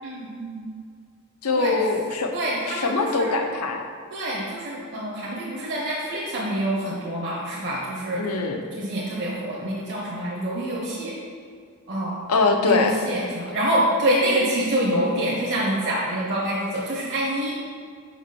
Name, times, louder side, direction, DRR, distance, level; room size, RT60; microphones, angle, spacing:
voice 1, 0.0-0.7 1.6-1.8 2.3-3.5 4.1-8.3 8.7-11.1 11.9-12.2 12.6-17.5, right 1 dB, 55° right, -5 dB, 1.3 m, -26 dB
voice 2, 1.4-2.3 2.7-3.9 8.2-8.6 12.3-12.9, left 3 dB, 70° left, 3 dB, 0.9 m, -22 dB
5.8 x 5.2 x 6.1 m, 2.2 s
head